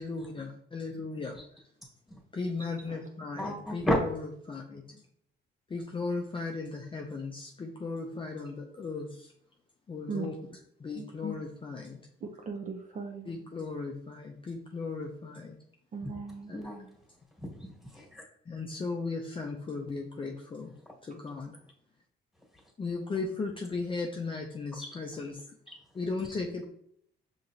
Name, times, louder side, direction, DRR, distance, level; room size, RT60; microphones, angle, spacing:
voice 1, 0.0-1.4 2.3-5.0 5.7-9.3 9.9-10.3 10.8-12.0 13.3-15.6 16.5-16.6 18.5-20.7 21.0-21.6 22.8-25.4 25.9-26.6, left 3 dB, 25° left, 1 dB, 0.5 m, -36 dB
voice 2, 3.4-4.0 16.0-16.1 16.5-16.9 17.4-18.2 24.8-25.0, equal, ahead, -2 dB, 1.6 m, -32 dB
voice 3, 12.2-13.3 15.9-16.5, right 5 dB, 40° right, 2 dB, 0.5 m, -38 dB
5.5 x 2.9 x 2.6 m, 0.68 s
cardioid pair, 90°, 20 cm